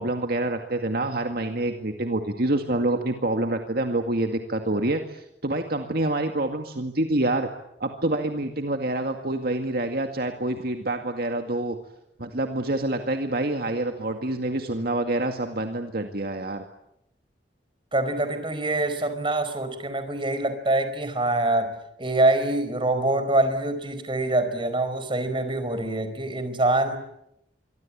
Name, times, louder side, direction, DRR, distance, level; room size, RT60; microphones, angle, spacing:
voice 1, 0.0-7.5 7.8-11.8 12.2-16.6, right 2 dB, 60° right, 5 dB, 2.1 m, -27 dB
voice 2, 17.9-21.7 22.0-27.0, right 2 dB, 30° right, 10 dB, 4.7 m, -25 dB
26.5 x 24.5 x 8.7 m, 0.80 s
head